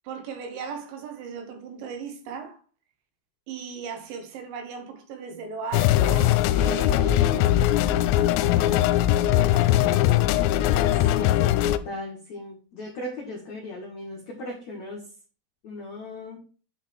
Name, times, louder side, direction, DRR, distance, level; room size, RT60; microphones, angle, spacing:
voice 1, 0.0-2.6 3.5-10.6, right 4 dB, 70° right, 3.2 m, -38 dB
sound 1, 5.7-11.8, left 13 dB, 85° left, 3.2 m, -21 dB
voice 2, 11.1-15.0 15.6-16.4, left 1 dB, 65° left, 1.7 m, -37 dB
9.4 x 5.0 x 4.3 m
omnidirectional pair, 6.0 m